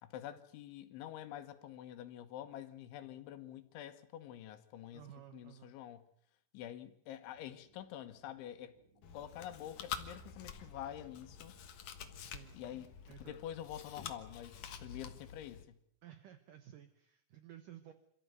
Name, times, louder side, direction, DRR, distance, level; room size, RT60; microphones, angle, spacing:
voice 1, 0.0-5.1 5.3-6.1 6.5-8.8 9.1-11.6 12.6-12.9 13.2-15.8, left 11 dB, 80° left, 3.7 m, -47 dB
voice 2, 4.9-5.8 12.2-12.6 13.1-13.4 16.0-17.9, right 11 dB, 75° right, 1.9 m, -55 dB
sound 1, 7.3-15.3, right 3 dB, 25° right, 3.4 m, -71 dB
Chewing mastication, 9.0-15.6, left 8 dB, 60° left, 2.1 m, -48 dB
27.0 x 14.5 x 9.4 m
omnidirectional pair, 5.4 m